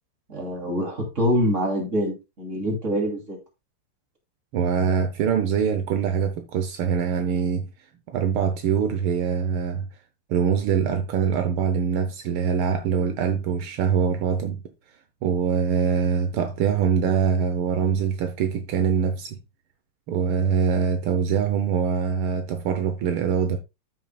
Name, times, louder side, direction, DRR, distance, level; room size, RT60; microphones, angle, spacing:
voice 1, 0.3-3.4, equal, 35° right, 3.2 m, -25 dB
voice 2, 4.5-7.7 8.1-9.9 10.3-14.6 15.2-19.4 20.1-23.6, right 7 dB, 80° right, 1.7 m, -23 dB
13.5 x 6.0 x 2.3 m
omnidirectional pair, 2.3 m